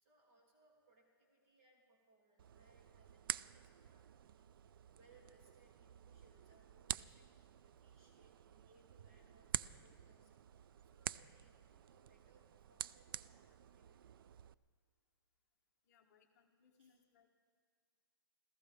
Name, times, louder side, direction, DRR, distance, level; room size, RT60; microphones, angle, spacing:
voice 1, 0.0-7.3 7.6-14.2 16.8-17.0, right 3 dB, 35° right, -1 dB, 2.6 m, -71 dB
sound 1, 2.4-14.5, right 10 dB, 60° right, 0.4 m, -48 dB
voice 2, 15.8-17.3, left 6 dB, 45° left, 4 dB, 1.1 m, -71 dB
26.5 x 15.5 x 3.5 m, 2.2 s
hypercardioid pair, 170°, 13 cm